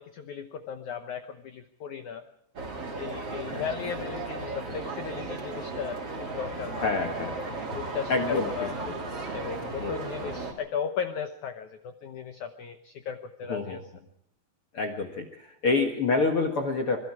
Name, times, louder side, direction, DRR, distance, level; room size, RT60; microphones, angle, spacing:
voice 1, 0.0-2.2 2.9-8.8 9.3-13.8, left 7 dB, 85° left, 8 dB, 1.6 m, -36 dB
sound 1, 2.6-10.5, right 3 dB, 35° right, 4.0 m, -35 dB
voice 2, 6.8-7.6 8.1-8.5 8.8-8.9 9.8-9.9 13.5-13.8 14.7-17.0, left 3 dB, 60° left, 4 dB, 1.5 m, -27 dB
26.0 x 22.0 x 4.9 m, 0.77 s
omnidirectional pair, 5.1 m